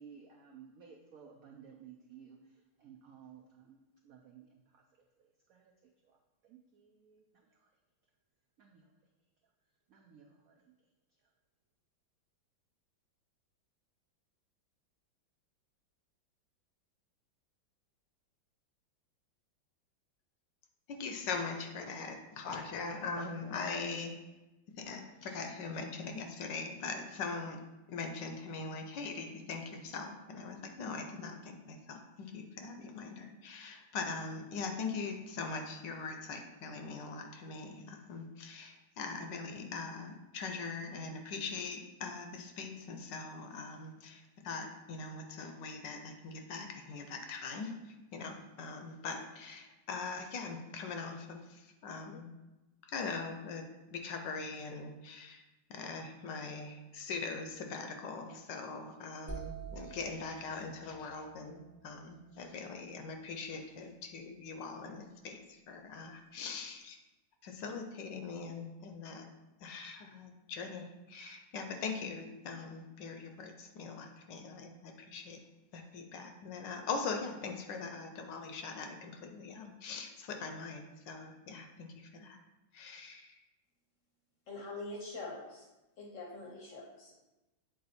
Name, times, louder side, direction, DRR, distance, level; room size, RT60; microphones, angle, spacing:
voice 1, 0.0-3.8 4.0-4.8 5.2-7.7 8.6-8.9 9.9-10.7, right 7 dB, 80° right, 1 dB, 0.7 m, -57 dB
voice 2, 20.9-24.1 24.8-27.6 27.9-47.7 48.1-52.3 52.9-53.6 53.9-55.4 55.7-67.0 67.4-69.2 69.6-75.4 75.7-82.4 82.7-83.4, left 4 dB, 70° left, 5 dB, 1.2 m, -41 dB
sound 1, 59.3-63.1, right 5 dB, 15° right, 0.8 m, -48 dB
voice 3, 84.5-85.7 86.0-87.1, left 2 dB, 55° left, 0 dB, 1.0 m, -44 dB
7.7 x 3.9 x 4.2 m, 1.0 s
omnidirectional pair, 2.2 m